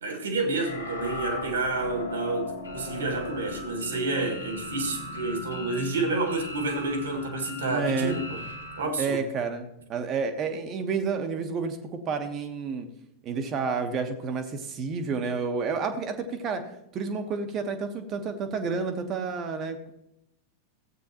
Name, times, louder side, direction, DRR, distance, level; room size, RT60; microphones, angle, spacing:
voice 1, 0.0-8.4 8.8-9.2, right 2 dB, 65° right, 1.9 m, -29 dB
sound 1, 0.6-8.8, left 2 dB, 85° left, 1.6 m, -38 dB
voice 2, 7.7-8.2 9.0-11.8 12.1-12.9 13.2-16.6 16.9-19.9, right 5 dB, 30° right, 1.2 m, -30 dB
15.0 x 8.4 x 2.9 m
figure-of-eight pair, 90°, 0 cm